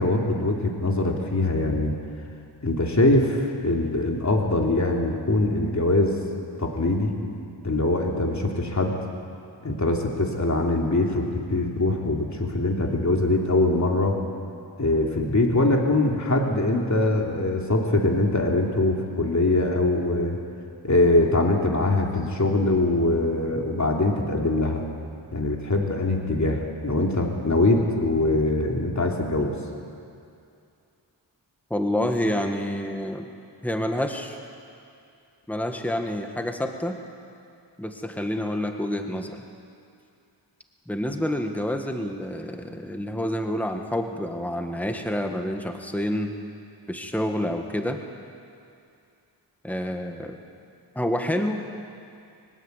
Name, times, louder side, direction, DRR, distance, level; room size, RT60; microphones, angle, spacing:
voice 1, 0.0-1.9 2.6-6.1 6.6-7.1 7.6-8.9 9.6-14.2 14.8-20.4 20.8-24.8 25.3-29.5, left 2 dB, 40° left, 0 dB, 3.2 m, -23 dB
voice 2, 31.7-33.3 33.6-34.4 35.5-37.0 37.8-39.4 40.9-46.3 46.9-48.0 49.6-50.4 51.0-51.6, left 1 dB, 5° left, 4 dB, 1.7 m, -28 dB
22.5 x 20.0 x 8.3 m, 2.5 s
wide cardioid pair, 65°, 42 cm